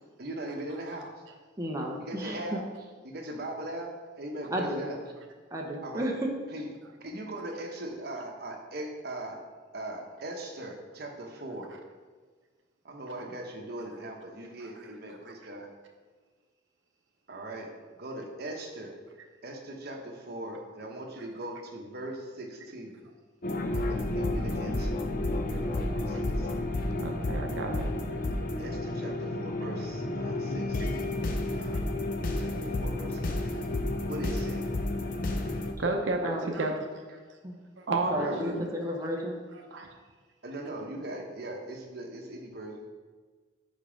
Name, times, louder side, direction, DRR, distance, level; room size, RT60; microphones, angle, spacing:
voice 1, 0.2-1.1 2.0-5.1 5.8-6.2 6.5-6.7 7.0-9.4 9.7-11.7 12.8-15.7 17.3-18.9 19.4-23.1 23.7-26.5 28.6-31.2 31.5-31.8 32.3-33.6 34.1-34.7 36.3-36.5 37.1-37.2 38.0-38.6 40.4-42.9, right 1 dB, 55° right, 1 dB, 1.0 m, -40 dB
voice 2, 1.6-2.6 4.5-4.8 5.5-6.3 36.2-36.5 37.4-37.6 37.9-39.4, equal, 15° right, -1 dB, 0.7 m, -32 dB
sound 1, 23.4-35.7, left 2 dB, 45° left, 0.5 m, -31 dB
voice 3, 27.0-27.9 35.8-36.7 37.8-38.6 39.7-39.9, right 2 dB, 75° right, 3 dB, 0.6 m, -31 dB
5.3 x 4.8 x 5.1 m, 1.5 s
head